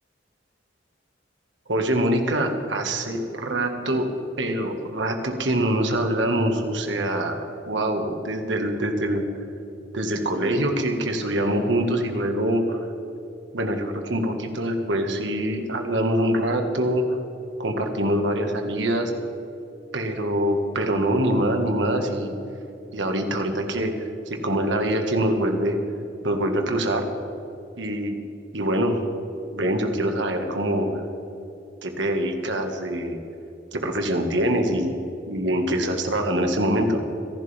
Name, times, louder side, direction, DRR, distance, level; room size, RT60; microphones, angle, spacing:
voice 1, 1.7-4.1 4.4-9.3 9.9-12.9 13.5-17.1 17.6-19.1 19.9-22.4 22.9-23.9 24.3-25.8 26.2-27.1 27.8-28.2 28.5-29.0 29.5-30.9 31.8-33.2 33.7-34.9 35.3-37.0, right 1 dB, 75° right, 4 dB, 1.8 m, -24 dB
25.5 x 11.5 x 3.5 m, 2.8 s
head